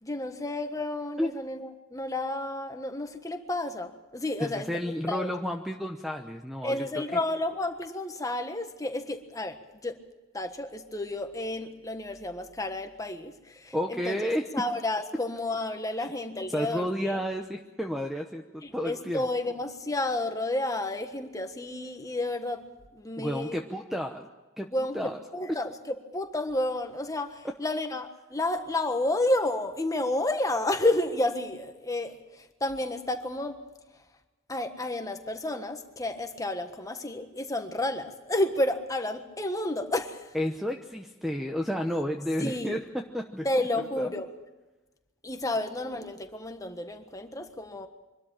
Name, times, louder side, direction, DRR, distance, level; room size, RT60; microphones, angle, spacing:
voice 1, 0.0-4.7 5.1-5.3 6.6-9.6 9.8-10.0 10.3-17.2 18.6-22.6 22.9-23.6 24.7-33.6 34.5-40.3 42.4-42.8 43.4-44.3 45.2-47.9, left 2 dB, 15° left, 6 dB, 1.4 m, -31 dB
voice 2, 4.4-6.8 13.7-14.5 16.5-18.4 18.7-19.3 23.2-24.3 24.6-24.7 24.9-25.2 27.4-27.5 40.3-42.8 43.1-43.5 44.0-44.1, equal, ahead, 3 dB, 0.9 m, -31 dB
24.5 x 13.0 x 8.8 m, 1.1 s
head